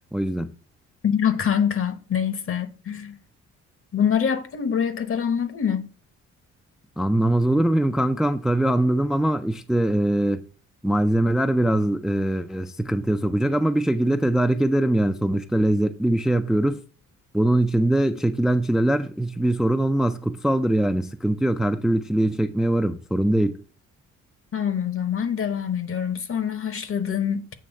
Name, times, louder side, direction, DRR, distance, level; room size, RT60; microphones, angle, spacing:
voice 1, 0.1-0.5 7.0-10.4 10.8-16.8 17.3-23.6, right 1 dB, ahead, 0.4 m, -22 dB
voice 2, 1.0-3.2 3.9-5.9 24.5-27.5, left 8 dB, 45° left, 1.0 m, -25 dB
7.7 x 3.2 x 5.3 m
cardioid pair, 90°, 30 cm